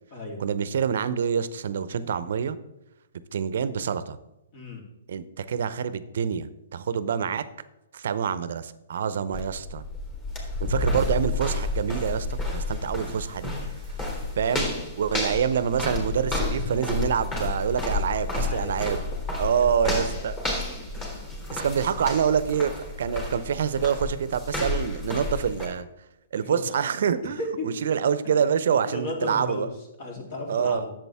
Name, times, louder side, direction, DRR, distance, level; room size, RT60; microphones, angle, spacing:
voice 1, 0.4-2.6 3.3-4.2 5.1-7.5 7.9-9.8 10.6-13.5 14.4-14.7 15.0-19.0 19.4-20.4 21.5-22.7 23.0-25.9 26.3-27.4 27.6-29.7 30.5-30.8, right 7 dB, 65° right, 15 dB, 0.7 m, -26 dB
voice 2, 4.5-4.8 18.3-18.7 19.6-20.3 20.6-20.7 21.3-21.5 26.3-26.6 27.4-27.9 28.2-28.3 28.7-29.7 30.0-30.9, left 1 dB, 45° left, 0 dB, 3.2 m, -35 dB
sound 1, 9.3-25.7, left 2 dB, 20° left, 3.3 m, -31 dB
11.0 x 7.7 x 3.5 m, 0.91 s
hypercardioid pair, 135°, 0 cm